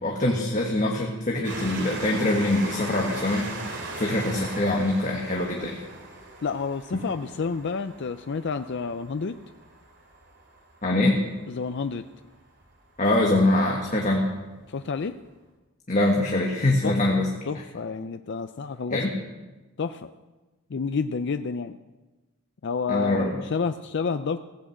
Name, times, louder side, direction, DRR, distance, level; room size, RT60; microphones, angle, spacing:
voice 1, 0.0-5.8 6.9-7.0 10.8-11.1 13.0-14.2 15.9-17.3 18.9-19.1 22.9-23.3, left 1 dB, 35° left, -1 dB, 1.6 m, -24 dB
Train, 1.4-12.6 13.3-13.4 13.7-13.8, right 2 dB, 55° right, 2.7 m, -39 dB
voice 2, 6.4-9.4 11.5-12.0 14.7-15.2 16.8-17.2 17.5-19.0 19.8-20.1 20.7-21.8 22.6-24.4, left 5 dB, 55° left, 9 dB, 0.5 m, -29 dB
16.5 x 8.7 x 7.9 m, 1.2 s
head